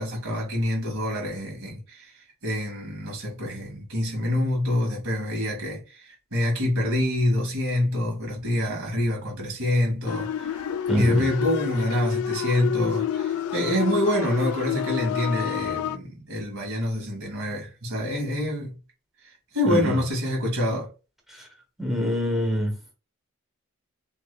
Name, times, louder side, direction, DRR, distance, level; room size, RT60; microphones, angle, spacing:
voice 1, 0.0-10.6 10.9-18.8 19.2-20.9, left 1 dB, 75° right, 1.9 m, -26 dB
sound 1, 10.1-16.0, left 9 dB, 85° left, 0.3 m, -29 dB
voice 2, 10.9-11.3 19.7-20.0 21.8-22.9, equal, ahead, 0.9 m, -25 dB
3.4 x 3.3 x 2.2 m
head